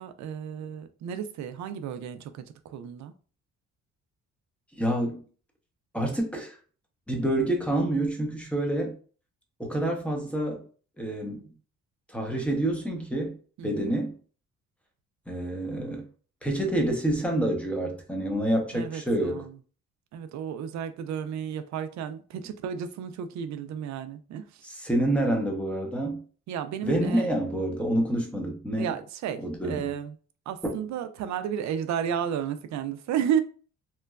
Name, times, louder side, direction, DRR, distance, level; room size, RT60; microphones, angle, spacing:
voice 1, 0.0-3.1 13.6-13.9 18.7-19.5 20.1-24.5 26.5-27.3 28.8-29.4 29.7-30.1 30.5-33.4, right 8 dB, 65° right, 0.4 m, -32 dB
voice 2, 4.8-5.2 5.9-6.6 7.1-9.0 9.6-10.6 11.0-11.4 12.1-13.4 13.6-14.2 15.3-16.0 16.4-19.4 24.6-26.2 26.8-28.9 29.4-29.9 30.6-30.7, right 1 dB, 5° left, 0.7 m, -27 dB
3.0 x 2.2 x 2.3 m
cardioid pair, 90°, 30 cm